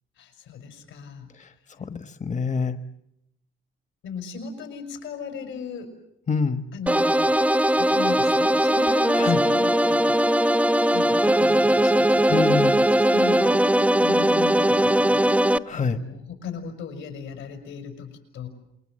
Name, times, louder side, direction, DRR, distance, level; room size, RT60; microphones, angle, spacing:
voice 1, 0.2-1.3 4.0-5.9 6.7-7.3 7.8-10.2 10.9-12.4 13.0-13.6 14.0-15.2 15.7-18.5, left 5 dB, 85° left, 5 dB, 6.3 m, -37 dB
voice 2, 1.9-2.8 6.3-6.6 9.1-9.4 12.3-12.8 15.7-16.0, left 5 dB, 35° left, 9 dB, 1.4 m, -25 dB
sound 1, 6.9-15.6, right 1 dB, 5° right, 0.9 m, -20 dB
28.0 x 22.0 x 7.8 m, 0.80 s
cardioid pair, 90°, 20 cm